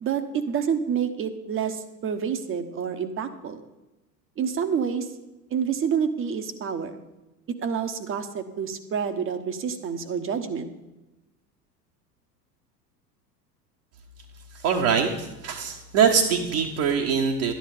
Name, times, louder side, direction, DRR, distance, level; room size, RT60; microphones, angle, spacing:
voice 1, 0.0-3.6 4.4-5.1 5.5-7.0 7.5-10.7, right 7 dB, 25° right, 10 dB, 1.1 m, -28 dB
voice 2, 14.6-17.5, right 6 dB, 50° right, -1 dB, 1.4 m, -23 dB
12.5 x 10.0 x 5.0 m, 1.0 s
figure-of-eight pair, 80°, 47 cm